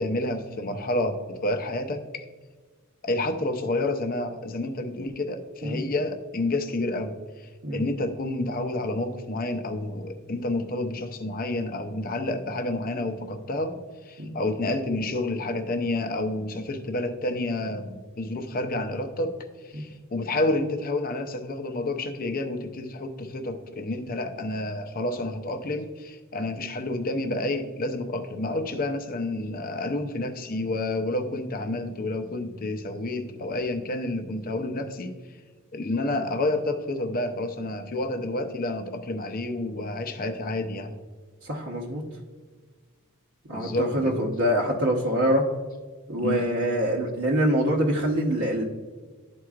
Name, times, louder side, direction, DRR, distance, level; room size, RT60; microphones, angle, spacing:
voice 1, 0.0-2.2 3.0-13.8 14.0-19.4 19.6-35.2 35.7-41.0 43.5-44.3 46.2-46.4, left 2 dB, 40° left, 6 dB, 0.6 m, -29 dB
voice 2, 41.4-42.0 43.5-45.4 46.1-48.6, equal, 60° right, -5 dB, 0.9 m, -25 dB
12.0 x 4.5 x 2.4 m, 1.4 s
head